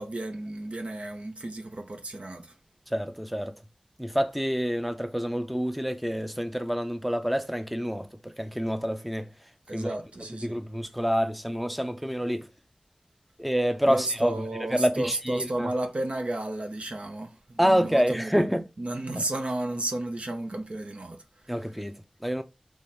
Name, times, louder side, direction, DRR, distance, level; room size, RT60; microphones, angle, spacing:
voice 1, 0.0-2.6 9.7-10.6 13.9-18.5 18.8-21.7, right 1 dB, 65° right, 0.8 m, -33 dB
voice 2, 2.9-3.5 4.0-9.3 9.7-9.9 10.4-12.5 13.4-14.4 14.7-15.7 17.6-18.7 19.2-19.3 21.5-22.4, equal, ahead, 0.5 m, -27 dB
3.5 x 3.1 x 4.2 m
wide cardioid pair, 45°, 2 cm